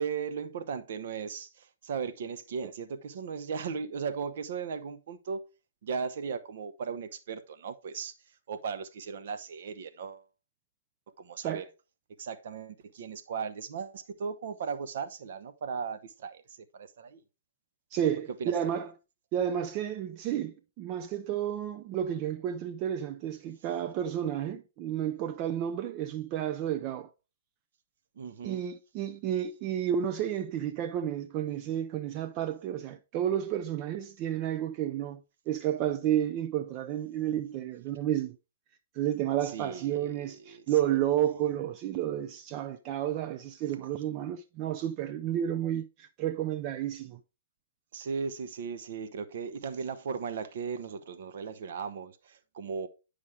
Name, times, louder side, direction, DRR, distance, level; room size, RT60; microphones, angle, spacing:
voice 1, 0.0-5.5 5.8-8.1 8.5-10.2 11.2-11.7 12.2-17.2 18.4-18.6 28.2-28.6 39.4-40.7 47.9-52.9, right 6 dB, 55° right, 0.8 m, -37 dB
voice 2, 17.9-18.9 19.3-27.1 28.4-35.2 35.5-38.4 38.9-47.2, right 10 dB, 30° right, 0.4 m, -31 dB
9.5 x 5.1 x 3.3 m
figure-of-eight pair, 115°, 0 cm